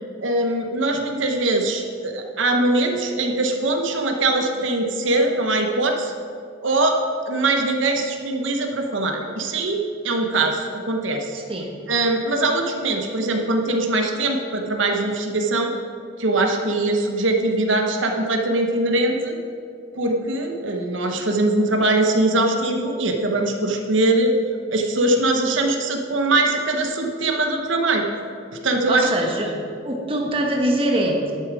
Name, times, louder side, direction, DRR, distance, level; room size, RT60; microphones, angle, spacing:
voice 1, 0.2-6.1 6.6-7.0 7.3-11.4 11.9-15.7 16.2-19.4 20.0-24.3 24.7-28.1 28.6-29.1, right 2 dB, 85° right, 3 dB, 1.1 m, -22 dB
voice 2, 11.3-11.7 28.9-29.5 29.8-31.3, right 1 dB, 30° right, 0 dB, 1.2 m, -23 dB
11.0 x 8.8 x 4.8 m, 2.4 s
head